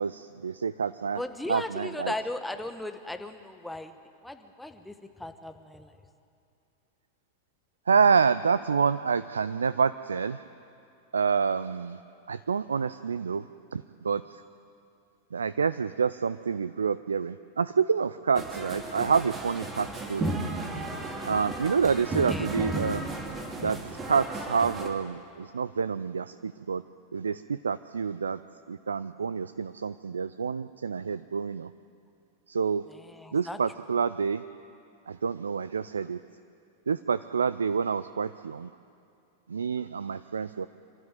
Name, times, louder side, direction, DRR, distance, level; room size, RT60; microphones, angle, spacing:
voice 1, 0.0-1.2 1.5-2.1 7.9-10.4 11.1-12.0 12.3-13.4 13.7-14.2 15.3-20.4 21.3-23.2 23.6-23.8 24.0-26.8 27.1-28.4 28.7-31.7 32.5-32.8 33.3-34.4 35.1-36.2 36.9-38.7 39.5-40.7, right 6 dB, 70° right, 14 dB, 0.4 m, -28 dB
voice 2, 1.1-3.9 4.2-4.9 5.2-5.9 22.3-22.5 32.9-33.6, left 1 dB, 5° left, 7 dB, 1.2 m, -37 dB
sound 1, 18.3-24.9, right 2 dB, 15° right, 2.5 m, -34 dB
26.5 x 12.5 x 9.1 m, 2.5 s
figure-of-eight pair, 90°, 0 cm